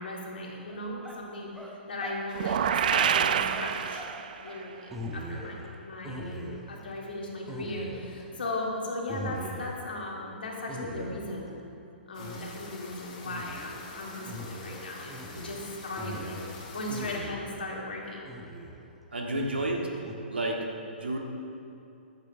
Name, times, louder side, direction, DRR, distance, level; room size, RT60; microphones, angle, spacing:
voice 1, 0.0-1.5 1.9-2.6 2.9-4.1 4.4-11.5 12.1-16.4 16.7-18.3, left 2 dB, 60° left, -3 dB, 2.9 m, -37 dB
sound 1, 0.7-1.2 1.5-2.2 2.5-3.1 3.5-4.2 4.4-4.6 4.9-5.7 6.0-6.8 7.5-8.2 9.1-9.9 10.7-11.5 12.2-12.8 13.2-13.9 14.3-17.7 18.2-18.9 19.3-20.1, equal, 5° right, 1.1 m, -41 dB
sound 2, 2.3-4.5, right 8 dB, 50° right, 0.5 m, -27 dB
sound 3, 12.1-17.2, left 3 dB, 45° left, 2.3 m, -46 dB
voice 2, 19.1-19.9 20.3-21.2, right 1 dB, 70° right, 1 dB, 1.9 m, -31 dB
14.5 x 12.0 x 3.6 m, 2.7 s
figure-of-eight pair, 120°, 6 cm